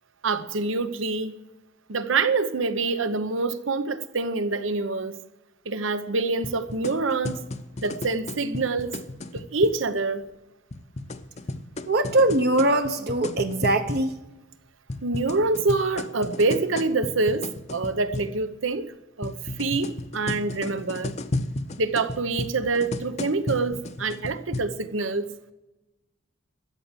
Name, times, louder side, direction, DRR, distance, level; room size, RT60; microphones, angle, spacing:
voice 1, 0.2-1.3 1.9-5.1 5.7-7.4 7.8-9.0 9.3-10.2 15.0-18.9 19.2-21.1 21.8-25.3, right 3 dB, 80° right, 12 dB, 0.9 m, -26 dB
sound 1, 6.4-9.8 10.7-14.1 14.9-18.4 19.2-24.6, left 2 dB, 35° left, 0.7 m, -34 dB
voice 2, 11.9-14.2, right 2 dB, 55° right, 6 dB, 0.8 m, -22 dB
14.0 x 8.2 x 8.9 m, 1.0 s
head